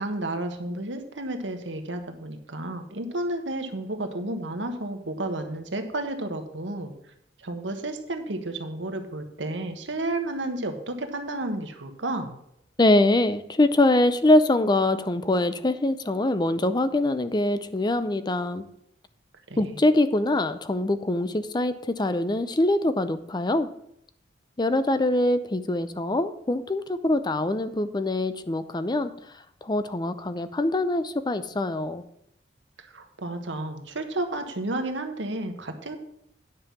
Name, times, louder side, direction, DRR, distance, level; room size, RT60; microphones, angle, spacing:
voice 1, 0.0-6.9 7.4-12.4 19.5-19.8 32.9-36.0, right 2 dB, 80° right, 6 dB, 1.4 m, -32 dB
voice 2, 12.8-18.6 19.6-23.7 24.6-29.1 29.6-32.0, left 2 dB, 25° left, 12 dB, 0.5 m, -23 dB
9.7 x 5.6 x 7.2 m, 0.74 s
head